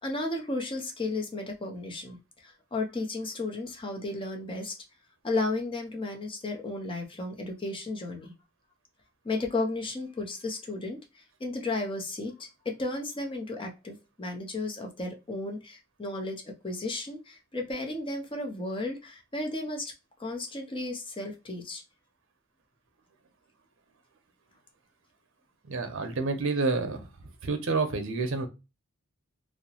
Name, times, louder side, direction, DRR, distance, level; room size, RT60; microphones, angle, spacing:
voice 1, 0.0-4.7 5.2-8.3 9.2-19.9 20.2-21.8, left 2 dB, 25° left, 2 dB, 0.6 m, -34 dB
voice 2, 25.6-27.1 27.4-28.5, right 3 dB, 60° right, 7 dB, 0.6 m, -28 dB
2.8 x 2.0 x 2.7 m, 0.27 s
head